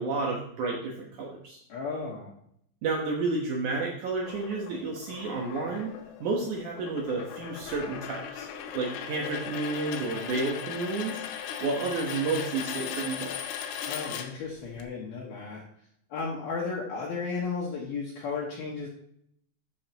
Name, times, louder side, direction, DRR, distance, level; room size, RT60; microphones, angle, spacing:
voice 1, 0.0-1.6 2.8-5.9 6.2-8.5 8.7-13.4, right 3 dB, 85° right, -1 dB, 1.7 m, -31 dB
voice 2, 1.7-2.3 13.9-15.6 16.1-18.9, left 4 dB, 65° left, -4 dB, 2.9 m, -34 dB
sound 1, 4.3-14.8, left 8 dB, 85° left, 3.2 m, -38 dB
12.5 x 6.5 x 2.9 m, 0.69 s
omnidirectional pair, 5.3 m